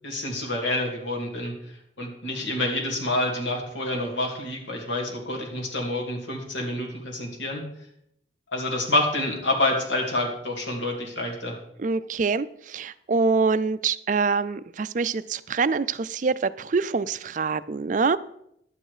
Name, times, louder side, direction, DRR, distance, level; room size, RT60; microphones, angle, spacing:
voice 1, 0.0-1.5 2.0-7.6 8.5-11.6, left 1 dB, 80° left, 0 dB, 2.6 m, -27 dB
voice 2, 11.8-18.2, right 4 dB, 45° right, 15 dB, 0.4 m, -25 dB
11.5 x 8.8 x 4.9 m, 0.75 s
head